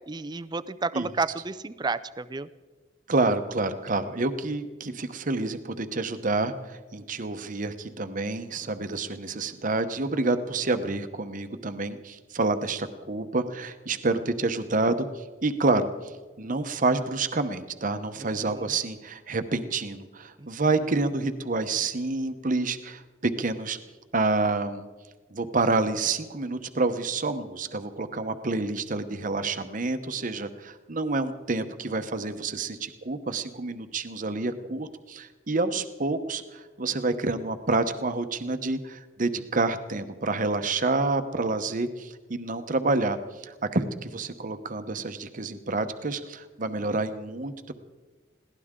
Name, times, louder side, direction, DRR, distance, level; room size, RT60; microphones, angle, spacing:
voice 1, 0.1-2.5 18.2-18.7 20.4-20.5, right 4 dB, 25° right, 13 dB, 0.5 m, -32 dB
voice 2, 3.1-16.1 16.4-23.8 24.1-24.9 25.3-47.7, right 3 dB, 45° right, 9 dB, 0.9 m, -28 dB
21.5 x 17.0 x 3.7 m, 1.3 s
head